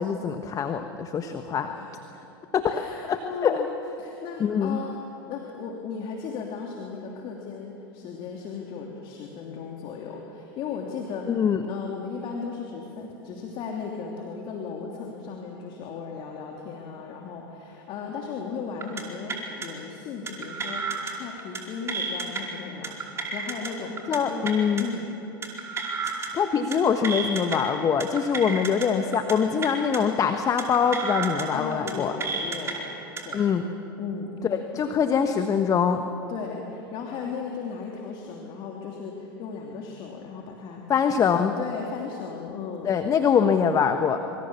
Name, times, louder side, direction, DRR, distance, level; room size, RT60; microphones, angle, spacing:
voice 1, 0.0-1.7 2.5-2.7 3.1-3.6 4.4-4.8 11.3-11.6 24.1-24.9 26.3-32.1 33.3-33.6 34.5-36.0 40.9-41.5 42.8-44.2, left 7 dB, 30° left, 7 dB, 1.3 m, -23 dB
voice 2, 2.7-3.7 4.0-11.3 11.7-23.0 23.3-25.1 31.5-32.9 33.2-33.4 34.0-34.6 36.3-41.3 41.6-42.9, left 5 dB, 45° left, 0 dB, 3.0 m, -36 dB
sound 1, 18.8-19.0 19.3-19.7 20.3-21.1 21.4-21.6 21.9-22.4 22.8-23.7 24.0-24.2 24.4-24.8 25.4-26.3 26.5-26.8 27.0-27.6 28.0-28.9 29.1-29.3 29.6-30.0 30.6-31.4 31.7-31.9 32.2-32.7 33.2-33.4, right 4 dB, 20° right, 4.4 m, -31 dB
26.0 x 25.5 x 7.2 m, 2.9 s
figure-of-eight pair, 90°, 12 cm